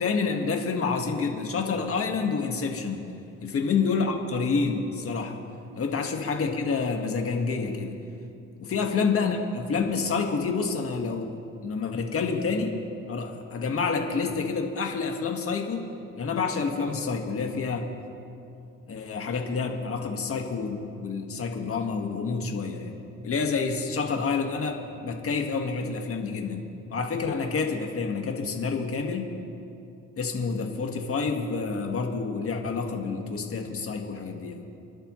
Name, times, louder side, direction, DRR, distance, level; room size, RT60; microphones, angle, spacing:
voice 1, 0.0-3.1 3.4-5.4 5.8-7.9 8.6-11.3 11.6-12.7 13.1-15.9 16.2-17.9 18.9-23.0 23.2-26.6 26.9-29.3 30.2-34.6, left 4 dB, 50° left, 2 dB, 1.8 m, -28 dB
29.0 x 11.5 x 3.2 m, 2.6 s
cardioid pair, 90°, 30 cm